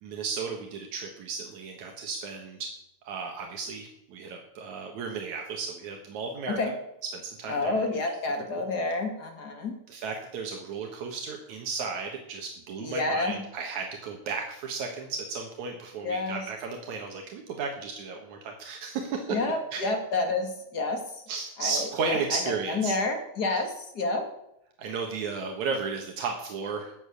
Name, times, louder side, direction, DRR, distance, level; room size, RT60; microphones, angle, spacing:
voice 1, 0.0-2.7 3.0-6.6 7.1-7.7 9.9-19.4 19.7-19.8 21.3-22.9 24.8-26.9, right 5 dB, 75° right, 2 dB, 2.8 m, -34 dB
voice 2, 7.5-9.8 12.8-13.4 16.0-16.4 19.3-21.0 21.6-24.2, left 2 dB, 35° left, 4 dB, 2.3 m, -29 dB
13.5 x 7.7 x 8.4 m, 0.79 s
omnidirectional pair, 3.4 m